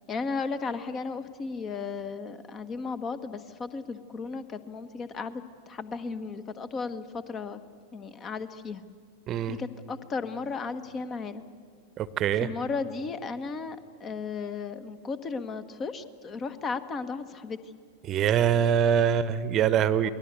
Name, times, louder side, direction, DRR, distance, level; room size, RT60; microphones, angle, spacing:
voice 1, 0.1-7.6 7.9-8.8 9.5-11.4 12.4-17.7 20.0-20.1, left 4 dB, 25° left, 12 dB, 1.3 m, -35 dB
voice 2, 9.3-9.6 12.0-12.5 18.0-20.1, right 9 dB, 30° right, 16 dB, 1.0 m, -24 dB
28.0 x 21.0 x 8.2 m, 2.1 s
figure-of-eight pair, 90°, 0 cm